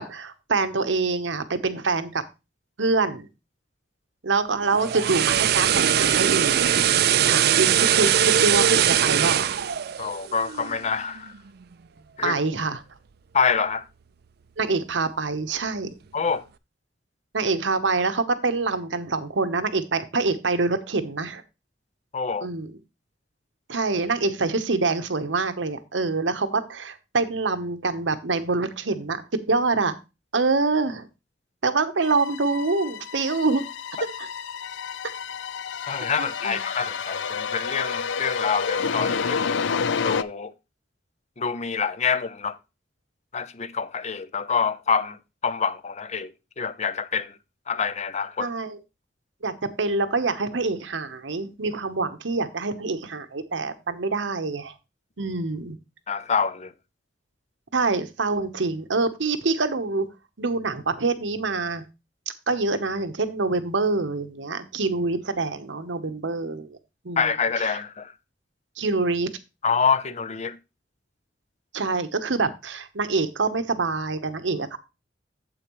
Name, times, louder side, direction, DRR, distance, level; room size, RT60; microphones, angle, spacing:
voice 1, 0.0-2.2 2.8-3.3 4.2-6.6 6.9-9.5 12.2-12.8 14.6-15.9 17.3-21.4 22.4-22.7 23.7-30.0 30.3-31.1 31.6-33.6 34.2-34.3 36.2-36.6 48.4-48.8 49.4-54.7 55.2-55.8 57.7-60.1 60.4-61.8 62.5-66.8 67.0-67.3 67.6-67.8 68.8-69.3 71.7-74.8, right 3 dB, 85° right, 1.0 m, -25 dB
sound 1, 4.6-10.8 11.2-11.4, right 10 dB, 60° right, 0.5 m, -21 dB
voice 2, 10.0-11.3 12.2-12.4 13.3-13.8 16.1-16.4 22.1-22.5 35.9-39.5 40.0-40.5 41.4-42.6 43.3-45.2 45.4-47.3 47.7-48.5 56.1-56.7 67.2-68.1 69.6-70.6, left 6 dB, 40° left, 0.6 m, -26 dB
sound 2, 32.0-40.2, left 6 dB, 85° left, 0.5 m, -29 dB
9.0 x 7.8 x 3.1 m
head